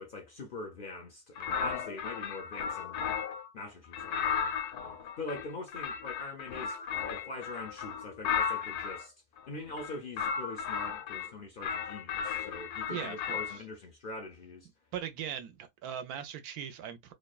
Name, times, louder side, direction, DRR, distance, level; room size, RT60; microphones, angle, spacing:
voice 1, 0.0-3.0 3.5-9.1 9.5-14.7, left 2 dB, 65° left, 0.5 m, -43 dB
sound 1, 1.4-3.5 3.9-9.0 9.7-11.3 11.6-13.6, left 7 dB, 85° left, 1.1 m, -35 dB
voice 2, 12.9-13.4 14.9-17.1, right 9 dB, 80° right, 1.1 m, -39 dB
2.9 x 2.1 x 2.2 m
omnidirectional pair, 1.6 m